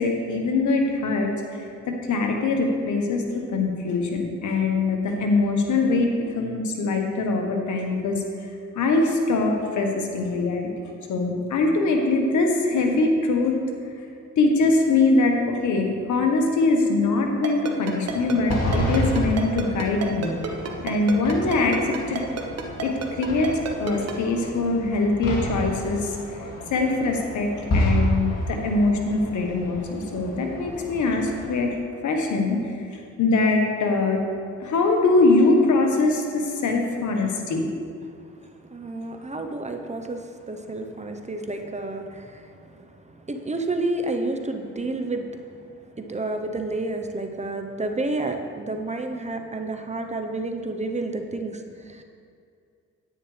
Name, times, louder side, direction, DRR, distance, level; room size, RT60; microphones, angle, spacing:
voice 1, 0.0-1.3 1.9-8.2 8.7-10.7 11.1-13.6 14.4-20.3 20.8-22.2 22.8-26.2 26.7-31.7 32.0-32.6 33.2-34.2 34.6-37.7, left 3 dB, 80° left, 2 dB, 1.3 m, -22 dB
Ringtone, 17.4-24.1, right 6 dB, 60° right, 1.1 m, -30 dB
sound 1, 18.1-31.5, equal, 60° left, 2.5 m, -30 dB
voice 2, 38.7-45.3 45.9-52.0, right 2 dB, 25° right, 5 dB, 0.9 m, -30 dB
9.8 x 9.4 x 3.3 m, 2.4 s
cardioid pair, 65°, 29 cm